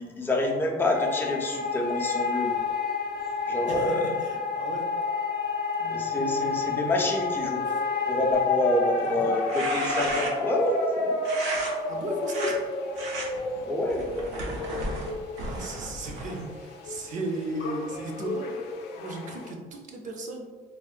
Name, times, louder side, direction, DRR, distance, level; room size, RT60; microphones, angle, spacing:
voice 1, 0.0-2.5 3.5-4.1 5.9-7.6 8.1-11.2 13.6-14.0, left 1 dB, 15° left, 0 dB, 0.4 m, -27 dB
sound 1, 0.9-19.5, left 4 dB, 75° left, 0.4 m, -30 dB
voice 2, 3.7-4.9 5.8-7.0 7.5-7.8 9.1-9.3 11.9-12.7 15.4-18.6 19.0-20.5, right 2 dB, 50° right, 2 dB, 0.5 m, -36 dB
sound 2, 9.3-10.6 11.2-11.7 12.2-12.5 13.0-13.3 13.9-16.5, right 2 dB, 90° right, 0.6 m, -34 dB
3.6 x 2.0 x 2.4 m, 1.4 s
cardioid pair, 110°, 17 cm